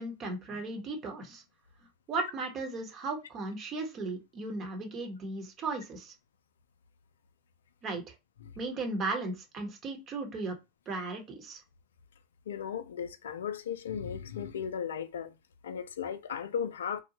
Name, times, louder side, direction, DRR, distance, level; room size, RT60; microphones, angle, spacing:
voice 1, 0.0-1.4 2.1-6.1 7.8-8.1 8.6-10.5 10.9-11.6, right 3 dB, 40° right, 1.0 m, -36 dB
voice 2, 12.5-15.3 15.6-17.0, left 7 dB, 80° left, 0.3 m, -36 dB
2.7 x 2.2 x 2.8 m
hypercardioid pair, 90°, 0 cm